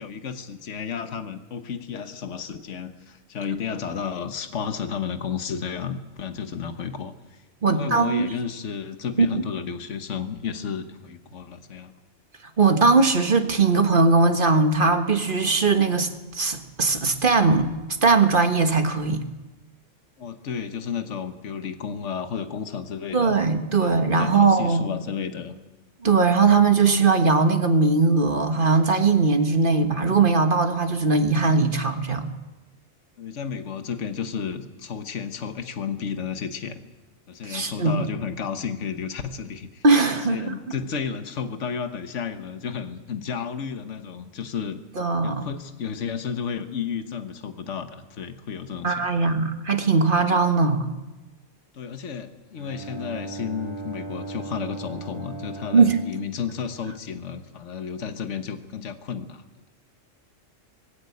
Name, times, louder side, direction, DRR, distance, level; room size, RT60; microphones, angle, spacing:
voice 1, 0.0-11.9 20.2-23.5 23.8-25.5 33.2-36.8 37.3-39.8 40.3-44.8 45.2-49.4 51.7-59.7, left 6 dB, 70° left, 8 dB, 1.5 m, -32 dB
voice 2, 7.6-8.3 9.2-9.3 12.6-16.1 16.3-17.7 18.0-19.2 23.1-24.9 26.0-32.3 37.4-38.1 39.8-40.6 45.0-45.5 48.8-50.9 55.7-56.0, right 4 dB, 45° right, 6 dB, 1.6 m, -20 dB
Bowed string instrument, 52.5-57.4, right 3 dB, 20° right, 2.0 m, -38 dB
20.0 x 16.0 x 8.5 m, 1.1 s
omnidirectional pair, 1.3 m